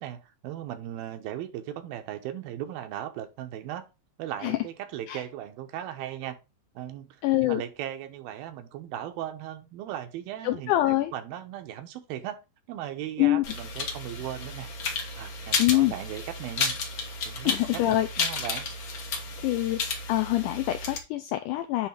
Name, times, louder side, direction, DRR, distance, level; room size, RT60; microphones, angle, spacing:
voice 1, 0.0-3.9 4.2-6.4 6.8-7.2 7.5-12.4 12.7-14.7 15.2-16.8 17.2-18.7, right 11 dB, 90° right, 2.8 m, -37 dB
voice 2, 7.2-7.6 10.4-11.1 13.2-13.4 15.6-15.9 17.4-18.3 19.4-19.8 20.1-21.9, left 16 dB, 85° left, 1.8 m, -25 dB
sound 1, 13.4-21.0, left 4 dB, 65° left, 1.2 m, -32 dB
8.9 x 3.1 x 4.9 m
omnidirectional pair, 4.1 m